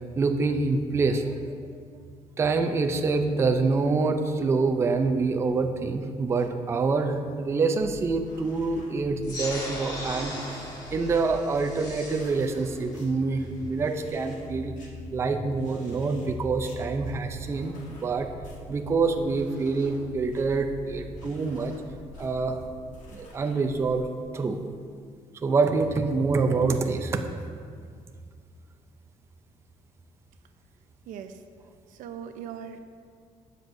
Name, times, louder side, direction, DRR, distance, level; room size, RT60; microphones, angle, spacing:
voice 1, 0.2-1.3 2.4-10.6 10.9-14.8 15.1-18.3 18.7-21.7 22.2-22.6 23.1-24.1 24.3-24.6 25.4-27.2, right 4 dB, 20° right, 5 dB, 0.4 m, -26 dB
sound 1, 7.8-24.0, left 1 dB, 70° left, 1.4 m, -44 dB
sound 2, 9.2-14.2, left 1 dB, 30° left, 1.5 m, -39 dB
voice 2, 31.1-31.4 31.9-32.8, right 8 dB, 80° right, 8 dB, 0.6 m, -39 dB
12.0 x 7.8 x 2.6 m, 2.1 s
cardioid pair, 170°, 13 cm